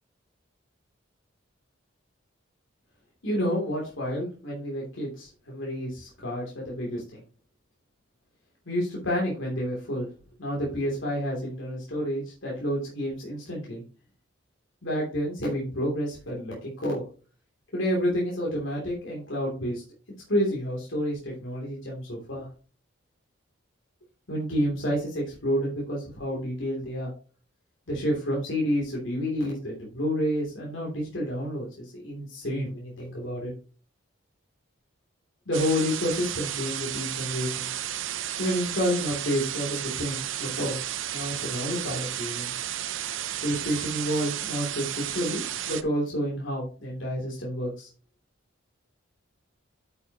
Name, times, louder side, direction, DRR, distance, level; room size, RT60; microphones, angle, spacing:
voice 1, 3.2-7.2 8.7-10.1 10.4-13.8 14.8-17.0 17.7-19.8 20.3-22.5 24.3-27.1 27.9-33.5 35.5-37.7 38.4-40.8 41.1-42.5 43.4-47.9, equal, 70° left, -3 dB, 3.0 m, -29 dB
sound 1, 35.5-45.8, right 11 dB, 70° right, 0.6 m, -33 dB
9.3 x 7.0 x 2.9 m, 0.37 s
head